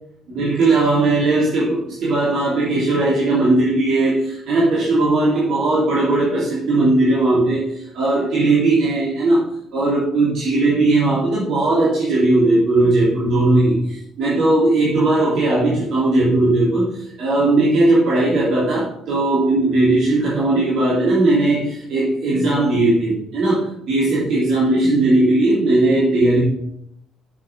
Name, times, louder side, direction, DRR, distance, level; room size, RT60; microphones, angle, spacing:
voice 1, 0.3-9.4 9.7-26.4, right 2 dB, 65° right, -7 dB, 3.0 m, -18 dB
7.6 x 7.2 x 5.1 m, 0.74 s
hypercardioid pair, 60°, 0 cm